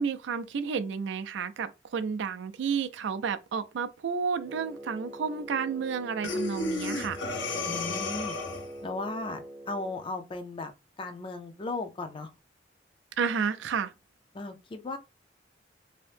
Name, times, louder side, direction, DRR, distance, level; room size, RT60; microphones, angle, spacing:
voice 1, 0.0-7.2 13.2-13.9, right 6 dB, 75° right, 0.4 m, -31 dB
Wind instrument woodwind instrument, 4.4-10.1, right 1 dB, 50° right, 0.8 m, -44 dB
Breathing, 6.2-8.8, left 3 dB, 90° left, 0.5 m, -32 dB
voice 2, 7.7-8.4 8.8-10.7 11.0-12.3 14.3-15.0, left 2 dB, 30° left, 0.4 m, -36 dB
2.7 x 2.0 x 3.2 m
head